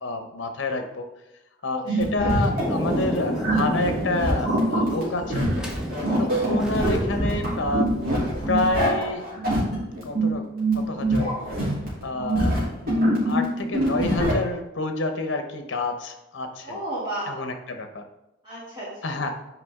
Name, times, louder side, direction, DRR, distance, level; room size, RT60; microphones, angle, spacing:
voice 1, 0.0-1.1 1.6-5.6 6.2-7.9 8.5-9.3 10.0-10.5 10.7-11.3 12.0-16.8 17.3-18.0 19.0-19.3, left 2 dB, 65° left, 6 dB, 0.8 m, -28 dB
voice 2, 1.7-2.3 6.0-6.3 16.6-17.4 18.4-19.2, right 1 dB, 25° right, -8 dB, 2.6 m, -34 dB
sound 1, 1.9-14.3, right 1 dB, 45° right, 2.8 m, -25 dB
Thunder, 2.6-8.7, equal, 5° right, 0.8 m, -30 dB
8.2 x 4.9 x 3.6 m, 0.91 s
head